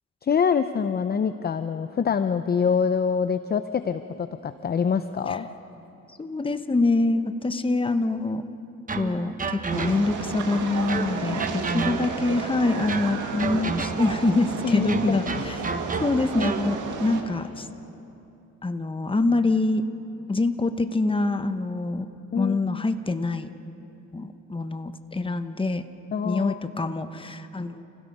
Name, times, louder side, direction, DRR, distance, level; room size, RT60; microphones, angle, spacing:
voice 1, 0.2-5.5 14.6-15.4 22.3-22.8 26.1-26.9, left 6 dB, 30° left, 11 dB, 0.6 m, -25 dB
voice 2, 6.2-8.4 8.9-15.6 16.0-17.7 18.6-19.8 20.3-22.1 22.4-23.5 24.1-25.8 26.2-27.8, left 2 dB, 15° left, 9 dB, 1.1 m, -25 dB
sound 1, 8.9-10.3 10.9-12.3 12.9-14.2 14.9-16.7, right 4 dB, 25° right, 1.2 m, -31 dB
sound 2, 9.7-17.2, right 5 dB, 80° right, 2.3 m, -32 dB
30.0 x 16.5 x 5.4 m, 2.8 s
cardioid pair, 90°, 30 cm